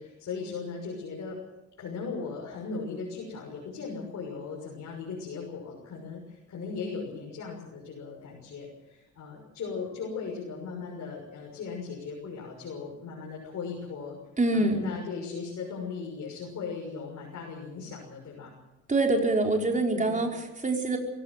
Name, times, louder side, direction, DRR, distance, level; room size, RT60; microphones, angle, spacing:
voice 1, 0.0-1.4 1.8-14.2 14.5-18.5 19.9-20.2, left 5 dB, 60° left, -1 dB, 6.5 m, -38 dB
voice 2, 14.4-14.8 18.9-21.0, right 2 dB, 25° right, 1 dB, 5.1 m, -25 dB
23.5 x 17.0 x 7.7 m, 0.96 s
cardioid pair, 90°, 30 cm